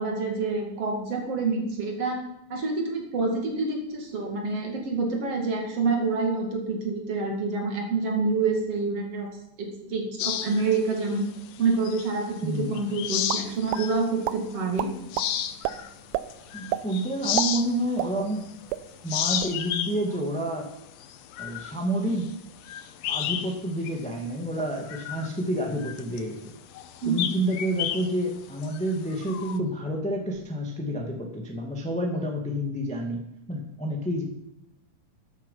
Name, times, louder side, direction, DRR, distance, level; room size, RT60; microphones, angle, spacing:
voice 1, 0.0-2.2 2.5-9.3 9.6-11.3 11.6-15.0 27.0-27.2, right 3 dB, 50° right, 2 dB, 3.0 m, -27 dB
sound 1, 10.2-12.4 12.7-14.1 14.5-14.6 15.0-18.7 19.0-23.6 23.8-24.0 24.5-29.6, left 10 dB, 75° left, 1.5 m, -32 dB
voice 2, 12.4-12.8 16.5-18.4 19.0-20.7 21.4-22.3 23.1-26.4 27.0-33.2 33.5-34.2, right 1 dB, 5° left, 1 dB, 0.8 m, -29 dB
sound 2, 13.3-13.8 14.2-14.4 14.8-15.3 15.6-15.7 16.1-16.3 16.7-16.9 17.2-18.4 18.7-18.8 19.2-19.6, right 15 dB, 80° right, 1.8 m, -28 dB
14.0 x 9.0 x 5.6 m, 0.83 s
omnidirectional pair, 3.9 m